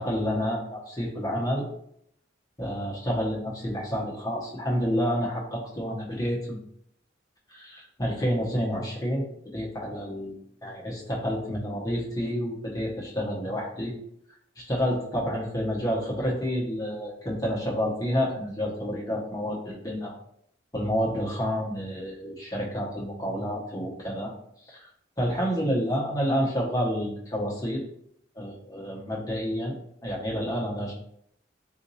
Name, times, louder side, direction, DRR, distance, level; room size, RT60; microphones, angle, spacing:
voice 1, 0.0-1.6 2.6-6.6 7.5-9.2 9.5-10.4 10.6-14.0 14.6-20.1 20.7-24.3 24.7-24.9 25.2-27.8 28.4-29.7 30.0-30.9, equal, 20° left, -4 dB, 0.8 m, -29 dB
3.9 x 2.5 x 2.7 m, 0.71 s
head